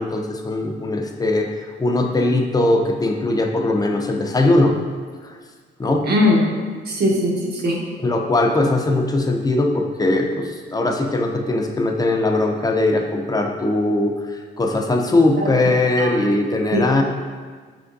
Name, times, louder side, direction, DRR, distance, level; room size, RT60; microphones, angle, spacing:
voice 1, 0.0-4.7 5.2-5.4 5.8-6.1 8.0-17.0, left 2 dB, 20° left, 3 dB, 0.5 m, -20 dB
voice 2, 6.0-6.5 6.9-7.8 15.4-15.5 16.0-16.1 16.7-16.9, left 1 dB, 55° right, -1 dB, 0.8 m, -19 dB
5.0 x 3.4 x 2.6 m, 1.6 s
cardioid pair, 90°, 20 cm